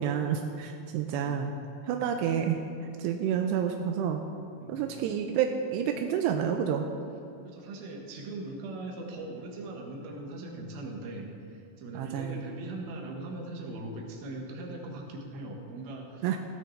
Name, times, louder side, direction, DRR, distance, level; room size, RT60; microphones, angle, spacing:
voice 1, 0.0-1.5 1.8-2.6 3.0-4.2 4.7-6.8 11.9-12.4 16.2-16.4, right 8 dB, 85° right, 4 dB, 2.7 m, -29 dB
voice 2, 7.4-16.3, right 2 dB, 65° right, 1 dB, 3.1 m, -40 dB
16.5 x 13.0 x 3.3 m, 2.5 s
omnidirectional pair, 4.9 m